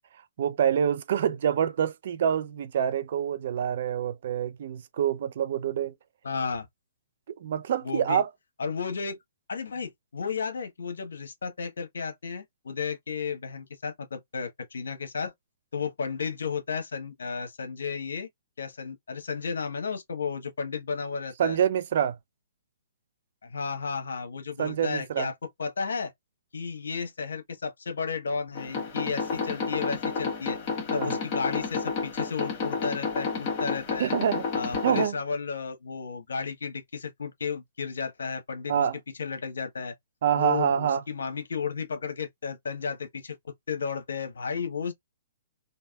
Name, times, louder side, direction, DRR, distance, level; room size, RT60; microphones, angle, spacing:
voice 1, 0.4-5.9 7.3-8.3 21.4-22.2 24.6-25.3 30.9-31.1 34.0-34.5 34.8-35.2 38.7-39.0 40.2-41.0, right 9 dB, 60° right, 0.5 m, -26 dB
voice 2, 6.2-6.7 7.8-8.2 8.6-9.2 9.5-15.3 15.7-18.3 18.6-21.6 23.4-25.3 25.6-26.1 26.5-30.6 30.9-34.1 34.5-38.9 39.2-39.9 40.3-43.4 43.7-44.9, left 5 dB, 75° left, 1.0 m, -33 dB
sound 1, 28.5-35.1, left 5 dB, 35° left, 1.3 m, -31 dB
3.4 x 2.6 x 2.2 m
hypercardioid pair, 130°, 0 cm